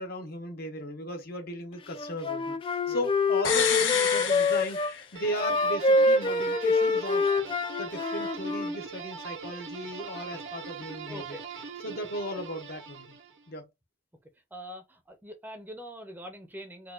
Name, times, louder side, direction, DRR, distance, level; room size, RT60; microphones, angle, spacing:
voice 1, 0.0-7.3 7.8-11.4 11.8-13.2 13.5-13.7, equal, 55° left, 0.9 m, -36 dB
Wind instrument woodwind instrument, 2.0-4.9 5.4-8.8, left 3 dB, 25° left, 0.4 m, -26 dB
sound 1, 3.4-5.4 5.7-5.8, left 7 dB, 85° left, 1.0 m, -29 dB
sound 2, 5.2-13.5, right 6 dB, 75° right, 0.8 m, -41 dB
voice 2, 11.1-11.4 11.9-12.0 14.5-16.9, equal, 10° right, 0.6 m, -43 dB
4.3 x 2.4 x 2.4 m
head